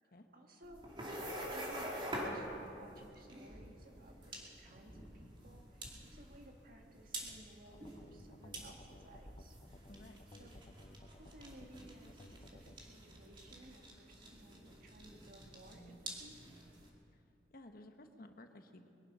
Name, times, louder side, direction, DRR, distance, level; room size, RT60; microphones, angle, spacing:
voice 1, 0.0-9.6 10.3-10.5 11.2-16.4, right 1 dB, 55° right, 2 dB, 1.9 m, -58 dB
sound 1, 0.6-16.9, right 1 dB, 30° right, 2.5 m, -47 dB
sound 2, 1.0-12.8, equal, 75° right, 4.2 m, -61 dB
sound 3, 7.7-12.8, left 1 dB, 35° left, 0.7 m, -57 dB
voice 2, 9.9-10.2 17.5-18.9, left 1 dB, 55° left, 6 dB, 1.1 m, -55 dB
22.5 x 11.5 x 5.6 m, 2.6 s
head